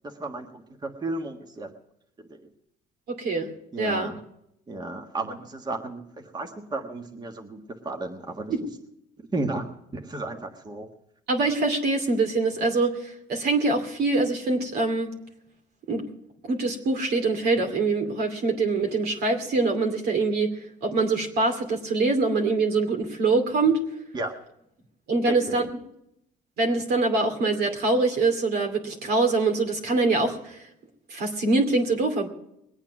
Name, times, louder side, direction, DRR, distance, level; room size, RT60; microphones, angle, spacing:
voice 1, 0.0-1.7 2.3-2.4 3.7-4.2 4.7-8.4 9.3-10.9 24.1-24.3 25.2-25.6, right 2 dB, 25° right, 3 dB, 1.6 m, -33 dB
voice 2, 3.2-3.5 3.8-4.1 8.5-8.6 11.3-15.1 15.9-16.0 16.4-20.5 20.8-23.8 25.1-25.6 26.6-30.7 31.1-32.3, right 3 dB, 70° right, 4 dB, 2.6 m, -24 dB
21.0 x 8.9 x 6.0 m, 0.79 s
cardioid pair, 110°, 17 cm